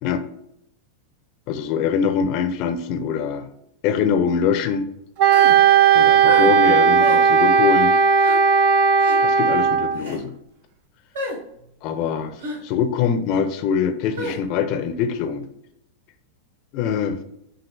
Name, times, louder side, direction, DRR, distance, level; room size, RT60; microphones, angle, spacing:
voice 1, 1.5-3.5 3.8-4.9 5.9-7.9 9.2-10.3 11.8-15.5 16.7-17.2, left 7 dB, 40° left, 8 dB, 0.5 m, -23 dB
Wind instrument woodwind instrument, 5.2-10.0, right 6 dB, 45° right, 0.4 m, -16 dB
sound 1, 5.3-5.6 6.3-6.5 7.0-7.2 8.2-8.4 9.0-9.2 9.9-10.2 11.1-11.4 12.4-12.6 14.2-14.4, equal, 65° right, 1.0 m, -29 dB
6.1 x 2.4 x 3.3 m, 0.78 s
figure-of-eight pair, 90°, 0 cm